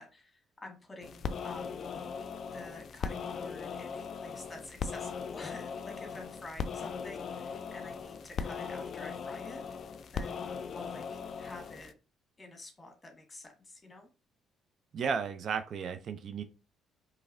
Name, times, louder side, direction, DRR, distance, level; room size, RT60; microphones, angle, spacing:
voice 1, 0.0-1.9 2.5-11.1 11.4-11.9 12.4-14.1, left 2 dB, 25° left, 3 dB, 1.6 m, -49 dB
sound 1, 1.0-11.9, left 6 dB, 50° left, 0.4 m, -39 dB
voice 2, 14.9-16.4, right 6 dB, 55° right, 9 dB, 0.4 m, -34 dB
4.6 x 3.2 x 2.6 m, 0.31 s
hypercardioid pair, 50°, 0 cm